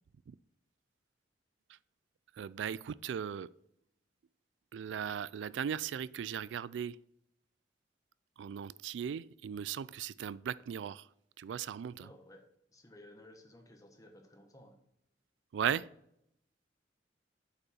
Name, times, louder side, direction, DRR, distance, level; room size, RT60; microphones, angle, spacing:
voice 1, 2.4-3.5 4.7-7.0 8.4-11.0 11.4-12.1 15.5-15.8, right 8 dB, 80° right, 19 dB, 0.3 m, -37 dB
voice 2, 12.0-12.4 12.7-14.7, left 1 dB, 20° left, 4 dB, 1.2 m, -56 dB
8.3 x 5.4 x 4.3 m, 0.76 s
head